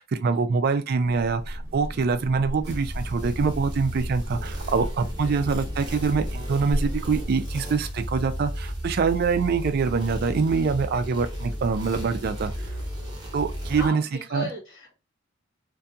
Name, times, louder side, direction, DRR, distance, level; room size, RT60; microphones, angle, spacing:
voice 1, 0.0-12.5 13.3-14.0 14.3-14.4, right 5 dB, 50° right, 0.3 m, -25 dB
sound 1, 1.0-7.3, equal, 80° right, 0.7 m, -35 dB
sound 2, 2.6-13.9, equal, 20° right, 0.9 m, -34 dB
voice 2, 13.7-14.9, right 1 dB, 60° left, 1.5 m, -36 dB
2.6 x 2.3 x 2.6 m
head